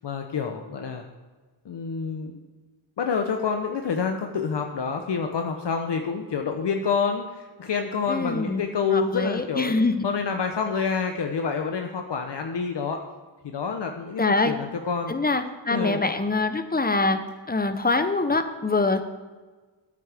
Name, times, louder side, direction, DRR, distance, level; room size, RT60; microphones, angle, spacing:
voice 1, 0.0-1.0 1.6-2.4 3.0-9.7 10.0-13.0 13.4-15.1 15.7-16.0, left 5 dB, 65° left, 4 dB, 0.9 m, -27 dB
voice 2, 8.1-8.6 8.9-10.1 14.2-14.5 15.1-17.2 17.5-19.0, left 3 dB, 20° left, 9 dB, 0.8 m, -24 dB
13.5 x 8.4 x 3.5 m, 1.3 s
wide cardioid pair, 95°, 44 cm